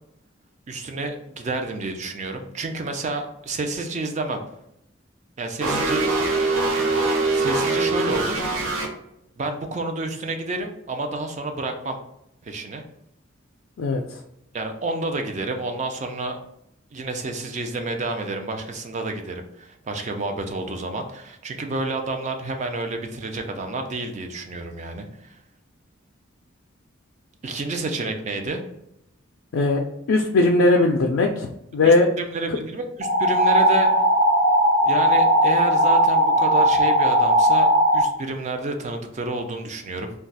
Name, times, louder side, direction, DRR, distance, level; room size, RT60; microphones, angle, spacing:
voice 1, 0.7-4.4 5.4-6.0 7.3-8.4 9.4-12.0 12.4-12.8 14.5-16.4 16.9-25.4 27.4-28.6 31.8-34.0 34.9-37.7 37.9-40.1, right 2 dB, 35° right, 5 dB, 0.3 m, -29 dB
sound 1, 5.6-8.9, right 3 dB, 80° right, 0.6 m, -22 dB
voice 2, 30.1-32.1, left 2 dB, 75° left, 1 dB, 0.3 m, -19 dB
sound 2, 33.0-38.0, equal, 50° right, 1.1 m, -18 dB
2.3 x 2.2 x 3.9 m, 0.80 s
head